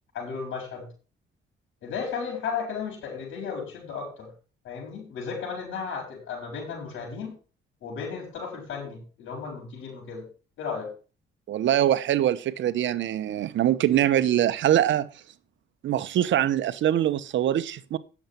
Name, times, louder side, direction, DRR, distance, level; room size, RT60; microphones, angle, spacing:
voice 1, 0.1-0.9 1.8-4.3 4.6-7.3 7.8-10.3 10.6-10.9, left 5 dB, 80° left, 5.6 m, -34 dB
voice 2, 11.5-15.1 15.8-18.0, right 11 dB, 70° right, 0.9 m, -23 dB
10.0 x 7.2 x 5.9 m
cardioid pair, 90°, 20 cm